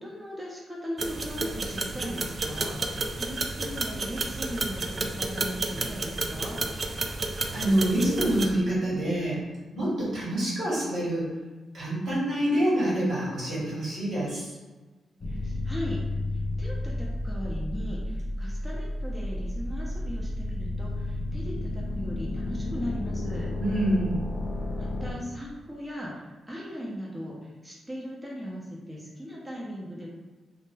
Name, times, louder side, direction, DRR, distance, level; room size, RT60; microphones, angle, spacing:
voice 1, 0.0-6.6 15.3-16.0 16.6-23.5 24.8-30.1, equal, 15° right, -4 dB, 0.7 m, -38 dB
sound 1, 1.0-8.5, right 3 dB, 50° right, 0.3 m, -31 dB
voice 2, 7.5-9.4 9.7-11.3 11.7-14.5 23.6-24.2, right 1 dB, 70° right, -9 dB, 1.3 m, -26 dB
sound 2, 15.2-25.1, left 1 dB, 45° left, 0.4 m, -32 dB
2.3 x 2.1 x 3.2 m, 1.2 s
hypercardioid pair, 40°, 0 cm